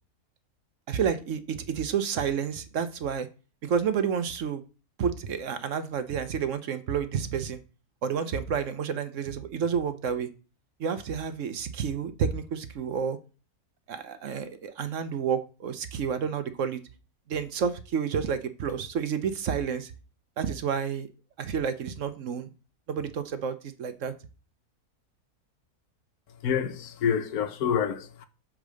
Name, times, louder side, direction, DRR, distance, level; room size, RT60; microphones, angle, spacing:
voice 1, 0.9-3.3 3.6-4.6 5.0-7.6 8.0-10.3 10.8-13.2 13.9-16.8 17.3-19.9 20.4-21.1 21.4-22.5 22.9-24.1, right 7 dB, 60° right, 1.1 m, -30 dB
voice 2, 26.4-28.3, left 8 dB, 80° left, 1.3 m, -27 dB
8.3 x 3.8 x 6.3 m
omnidirectional pair, 1.6 m